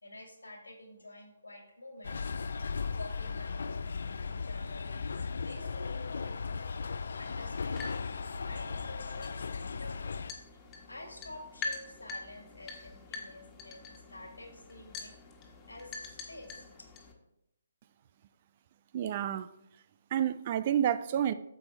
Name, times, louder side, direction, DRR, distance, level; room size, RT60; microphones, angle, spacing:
voice 1, 0.0-2.3 2.9-7.9 8.3-10.0 10.5-15.1 15.7-16.7, left 2 dB, 90° left, 2.1 m, -49 dB
sound 1, 2.0-10.3, left 5 dB, 65° left, 0.5 m, -37 dB
sound 2, 7.4-17.1, left 3 dB, 20° left, 1.5 m, -45 dB
voice 2, 18.9-19.5 20.1-21.3, right 10 dB, 40° right, 0.5 m, -29 dB
8.9 x 7.0 x 4.4 m
figure-of-eight pair, 140°, 0 cm